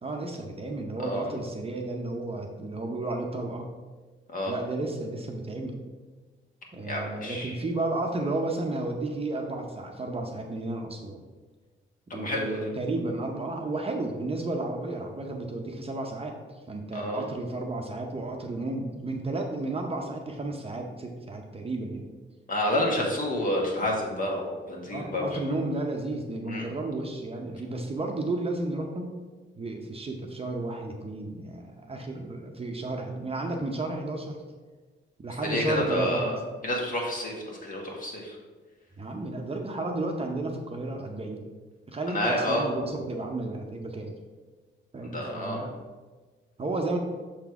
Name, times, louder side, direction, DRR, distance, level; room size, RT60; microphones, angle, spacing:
voice 1, 0.0-3.7 4.5-5.8 6.7-11.2 12.1-16.3 16.7-22.1 23.0-23.1 24.9-29.1 29.6-34.4 35.2-36.3 39.0-41.5 41.9-44.1 44.9-45.7 46.6-47.0, right 2 dB, 30° right, 2 dB, 0.7 m, -32 dB
voice 2, 6.8-7.6 12.1-12.7 16.9-17.2 22.5-25.4 26.5-26.7 35.4-36.4 36.6-38.4 42.1-42.6 45.0-45.6, left 1 dB, 45° left, -1 dB, 1.5 m, -29 dB
6.4 x 3.9 x 4.7 m, 1.3 s
cardioid pair, 110°, 20 cm